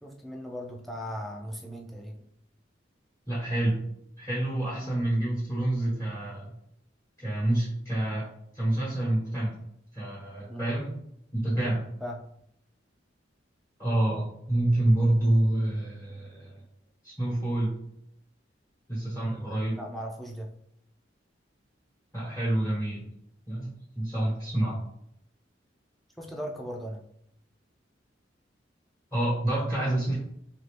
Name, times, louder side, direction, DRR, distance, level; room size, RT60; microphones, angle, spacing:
voice 1, 0.0-2.2 4.8-5.0 10.5-10.8 12.0-12.2 19.8-20.5 26.2-27.0, equal, ahead, -1 dB, 0.4 m, -38 dB
voice 2, 3.3-3.9 4.2-6.5 7.2-8.2 8.5-9.5 9.9-10.9 11.3-11.8 13.8-16.5 17.0-17.8 18.9-19.8 22.1-23.1 23.5-24.8 29.1-30.2, right 1 dB, 15° left, -7 dB, 1.1 m, -27 dB
3.3 x 2.7 x 3.3 m, 0.74 s
head